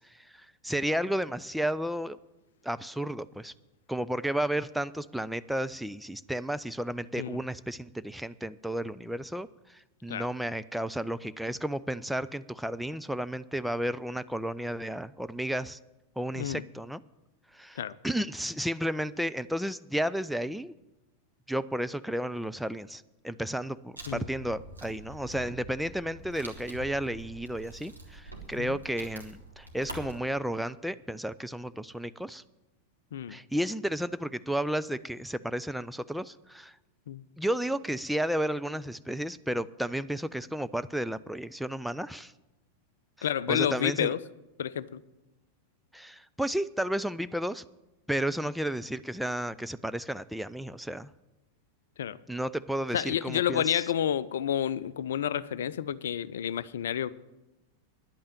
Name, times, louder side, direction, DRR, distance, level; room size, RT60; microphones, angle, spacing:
voice 1, 0.0-2.2 2.6-3.5 3.9-15.8 16.2-17.0 17.5-20.7 21.5-32.4 33.3-36.7 37.4-42.3 43.2-44.1 45.9-47.6 48.1-51.1 52.3-53.8, right 1 dB, ahead, 12 dB, 0.4 m, -32 dB
Wood, 24.0-30.2, right 1 dB, 85° right, 1.9 m, -45 dB
voice 2, 43.2-44.2 44.6-45.0 52.0-52.2 52.9-57.1, left 10 dB, 60° left, 17 dB, 0.4 m, -30 dB
10.5 x 8.6 x 9.0 m, 0.99 s
figure-of-eight pair, 90°, 0 cm